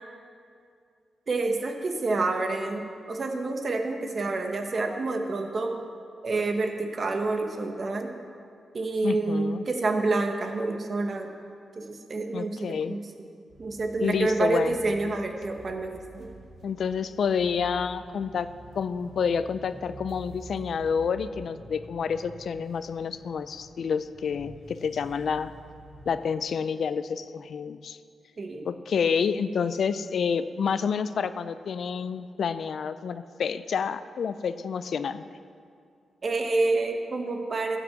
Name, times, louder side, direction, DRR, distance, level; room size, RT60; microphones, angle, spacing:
voice 1, 1.3-5.8 6.2-8.1 8.7-11.3 11.8-13.3 13.6-16.3 28.4-28.7 36.2-37.8, right 3 dB, 45° right, 4 dB, 1.2 m, -28 dB
voice 2, 9.0-9.6 12.3-13.0 14.0-15.1 16.6-18.5 18.8-25.5 26.1-28.0 28.6-35.2, left 6 dB, 70° left, 13 dB, 0.4 m, -29 dB
sound 1, 13.5-26.2, right 2 dB, 75° right, 2.6 m, -48 dB
14.0 x 6.0 x 7.2 m, 2.3 s
cardioid pair, 95°, 0 cm